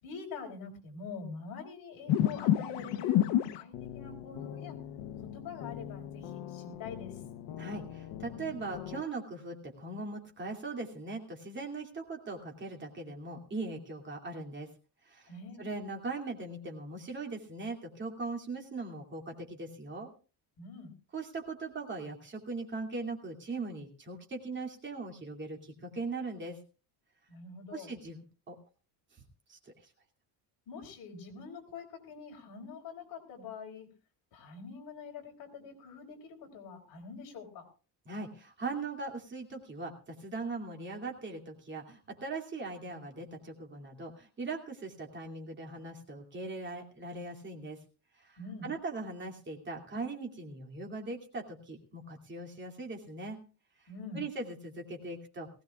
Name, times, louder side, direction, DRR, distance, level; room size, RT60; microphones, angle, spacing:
voice 1, 0.0-4.8 5.1-7.2 15.3-15.6 20.6-20.9 27.3-27.9 30.7-33.9 34.3-37.7 48.4-48.7 53.9-54.2, left 4 dB, 55° left, 1 dB, 4.3 m, -45 dB
sound 1, 2.1-9.0, left 12 dB, 85° left, 0.9 m, -33 dB
voice 2, 7.6-14.7 15.0-15.3 15.6-20.1 21.1-26.6 27.7-28.6 29.5-29.9 38.1-47.8 48.2-53.4 53.8-53.9 54.1-55.5, right 3 dB, 25° right, 2 dB, 2.6 m, -40 dB
19.5 x 16.5 x 2.4 m, 0.35 s
cardioid pair, 170°, 42 cm